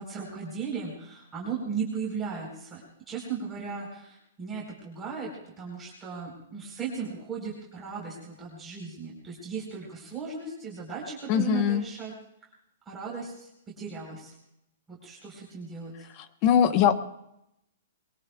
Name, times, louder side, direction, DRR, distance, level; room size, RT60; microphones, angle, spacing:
voice 1, 0.0-2.8 3.1-5.3 5.6-12.1 12.9-13.5 13.8-14.3 14.9-16.1, right 5 dB, 10° right, -5 dB, 4.0 m, -36 dB
voice 2, 11.3-11.8 16.2-16.9, left 9 dB, 30° left, 10 dB, 1.0 m, -22 dB
23.0 x 22.0 x 2.3 m, 0.82 s
hypercardioid pair, 160°, 0 cm